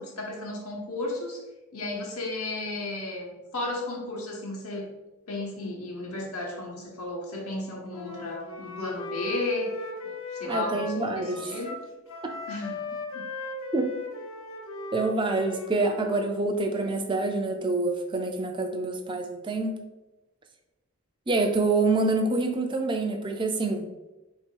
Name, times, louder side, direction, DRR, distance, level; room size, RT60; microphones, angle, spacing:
voice 1, 0.0-1.4 1.7-4.9 5.3-11.8 12.5-12.8 13.1-13.3, left 2 dB, 80° left, -1 dB, 1.1 m, -34 dB
Wind instrument woodwind instrument, 7.9-16.3, left 2 dB, 60° left, 0.7 m, -38 dB
voice 2, 10.5-11.5 13.7-13.9 14.9-19.8 21.3-23.9, right 3 dB, 20° right, 4 dB, 0.4 m, -26 dB
3.6 x 2.9 x 4.5 m, 1.0 s
head